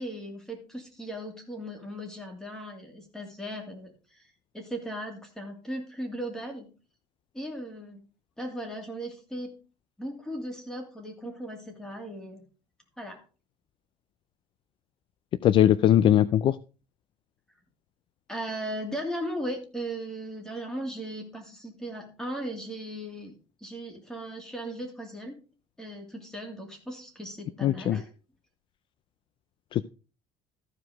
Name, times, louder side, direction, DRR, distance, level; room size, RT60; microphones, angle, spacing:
voice 1, 0.0-4.2 4.5-6.7 7.3-8.0 8.4-9.5 10.0-12.4 13.0-13.2 18.3-23.3 23.6-25.4 25.8-28.0, right 1 dB, 5° left, 2 dB, 2.7 m, -37 dB
voice 2, 15.4-16.6 27.6-28.0 29.7-29.8, left 11 dB, 45° left, 16 dB, 0.4 m, -20 dB
14.0 x 4.8 x 5.1 m, 0.34 s
cardioid pair, 140°, 13 cm